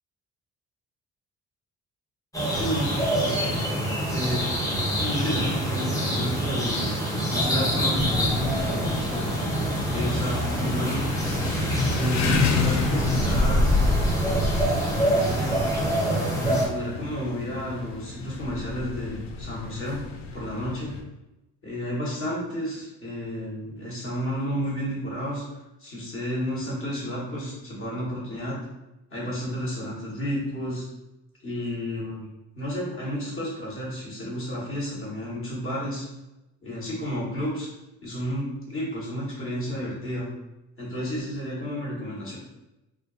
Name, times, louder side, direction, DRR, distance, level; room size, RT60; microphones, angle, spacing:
sound 1, 2.3-16.7, right 1 dB, 10° left, 0.7 m, -26 dB
voice 1, 2.5-3.5 4.1-4.4 5.0-6.9 7.3-9.3 9.9-11.0 11.9-13.7 15.1-15.6 16.3-20.0 20.3-20.9 21.6-25.4 25.8-28.6 29.1-30.8 31.4-32.3 32.5-36.0 36.6-37.7 38.0-40.3 40.8-42.4, equal, 45° left, -5 dB, 1.2 m, -31 dB
sound 2, 7.9-21.0, left 3 dB, 65° left, 0.4 m, -29 dB
2.5 x 2.3 x 2.4 m, 0.95 s
cardioid pair, 90°, 30 cm